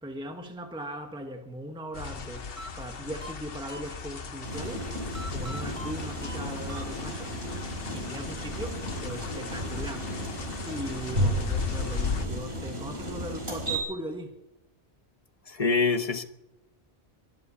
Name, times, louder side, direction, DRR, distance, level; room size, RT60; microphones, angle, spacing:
voice 1, 0.0-4.9 5.3-7.4 7.9-10.2 10.6-14.4, right 1 dB, 5° right, 1.3 m, -39 dB
sound 1, 1.9-12.3, left 5 dB, 65° left, 1.2 m, -37 dB
sound 2, 2.6-4.4 5.1-7.4, equal, 30° right, 1.3 m, -44 dB
sound 3, 4.4-13.8, right 1 dB, 65° right, 4.5 m, -34 dB
voice 2, 15.5-16.2, left 4 dB, 35° left, 1.1 m, -25 dB
23.0 x 7.9 x 7.1 m
omnidirectional pair, 1.1 m